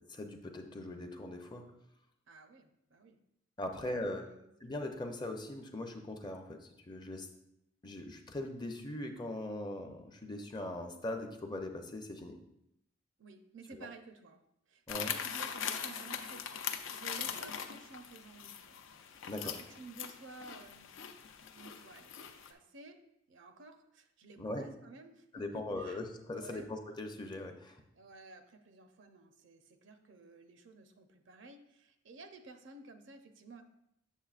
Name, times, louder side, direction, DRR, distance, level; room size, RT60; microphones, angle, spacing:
voice 1, 0.1-1.6 3.6-4.2 4.6-7.3 7.8-12.4 13.7-13.9 14.9-15.1 19.3-19.6 24.4-24.6 25.3-27.8, left 1 dB, 20° left, 4 dB, 0.6 m, -40 dB
voice 2, 2.3-3.2 3.8-4.5 13.2-14.4 14.7-20.9 21.5-23.0 23.3-26.0 26.3-26.7 27.9-33.6, right 3 dB, 65° right, 7 dB, 0.6 m, -53 dB
sound 1, 14.9-22.5, left 8 dB, 70° left, 0.5 m, -41 dB
7.3 x 7.3 x 2.4 m, 0.81 s
head